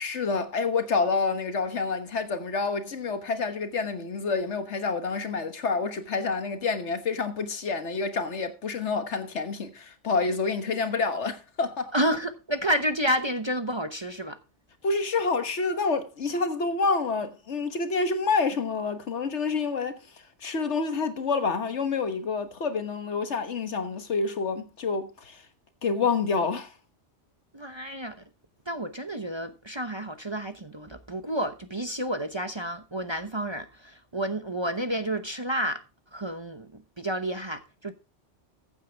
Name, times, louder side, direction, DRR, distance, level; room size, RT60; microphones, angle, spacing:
voice 1, 0.0-11.9 14.8-25.5 25.8-26.7, left 4 dB, 70° left, 1.6 m, -28 dB
voice 2, 11.9-14.4 27.5-28.2 28.7-35.8 36.1-37.9, equal, 25° right, 0.8 m, -30 dB
15.0 x 8.3 x 3.5 m
omnidirectional pair, 1.2 m